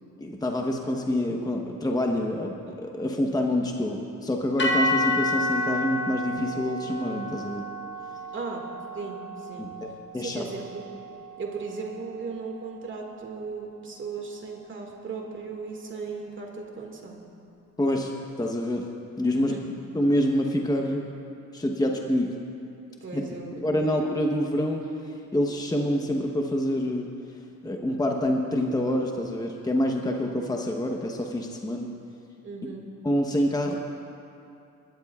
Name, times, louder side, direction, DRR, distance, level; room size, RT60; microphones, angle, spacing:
voice 1, 0.2-7.7 9.6-10.5 17.8-18.1 18.4-18.9 19.2-19.6 19.9-21.1 21.5-22.3 23.1-23.2 23.6-27.1 27.6-31.9 32.6-32.7 33.0-33.8, left 1 dB, 10° left, 1 dB, 1.0 m, -27 dB
sound 1, 4.6-12.9, left 1 dB, 35° left, 1.6 m, -31 dB
voice 2, 8.9-9.7 10.2-10.8 11.4-17.2 19.3-19.7 23.0-23.9 32.4-32.9, right 4 dB, 40° right, 0 dB, 2.0 m, -37 dB
24.5 x 12.5 x 2.4 m, 2.7 s
cardioid pair, 90°, 30 cm